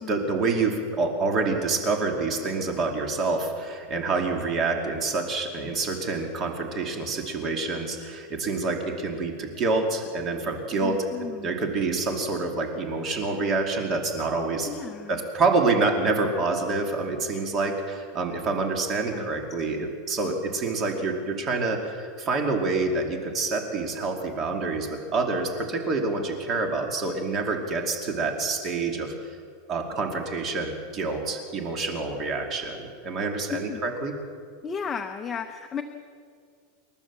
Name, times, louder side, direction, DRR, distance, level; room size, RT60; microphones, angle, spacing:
voice 1, 0.1-14.7 15.1-29.3 29.7-34.1, right 3 dB, 25° right, 3 dB, 2.6 m, -27 dB
voice 2, 10.8-11.5 14.6-15.2 19.1-19.6 33.5-33.8 34.6-35.8, left 7 dB, 15° left, 6 dB, 0.8 m, -34 dB
28.5 x 12.0 x 7.4 m, 2.3 s
supercardioid pair, 165°, 0 cm